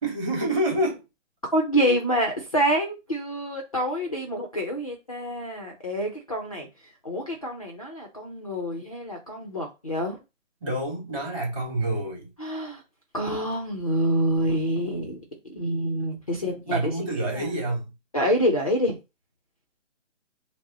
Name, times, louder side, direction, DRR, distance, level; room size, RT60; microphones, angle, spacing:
voice 1, 0.0-1.0 10.6-12.3 16.6-17.9, right 1 dB, 25° right, 2.2 m, -27 dB
voice 2, 1.5-6.7 7.0-10.2 12.4-12.8 13.1-15.2 15.5-16.9 17.3-17.4 18.1-19.0, equal, 30° left, 0.5 m, -27 dB
4.8 x 2.0 x 3.8 m
hypercardioid pair, 170°, 38 cm